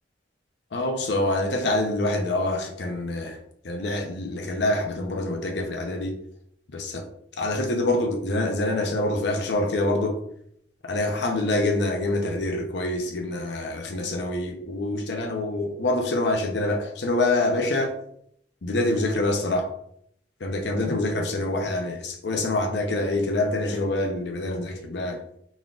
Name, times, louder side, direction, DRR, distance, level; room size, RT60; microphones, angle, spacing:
voice 1, 0.7-3.4 3.6-6.1 6.7-7.0 7.4-10.2 10.8-17.9 18.6-19.7 20.4-25.2, left 2 dB, 70° left, 0.6 m, -26 dB
4.1 x 2.4 x 3.6 m
head